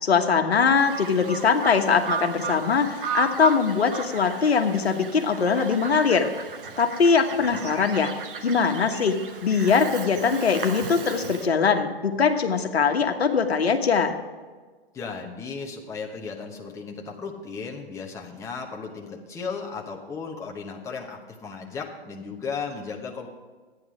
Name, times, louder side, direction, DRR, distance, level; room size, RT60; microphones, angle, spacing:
voice 1, 0.0-6.3 6.8-8.1 8.4-14.1, left 5 dB, 80° left, 5 dB, 1.3 m, -22 dB
Bird vocalization bird call bird song, 0.8-11.5, right 6 dB, 55° right, 1.4 m, -35 dB
voice 2, 14.9-23.3, left 5 dB, 10° left, 0 dB, 1.0 m, -35 dB
12.5 x 9.5 x 5.0 m, 1.4 s
hypercardioid pair, 130°, 31 cm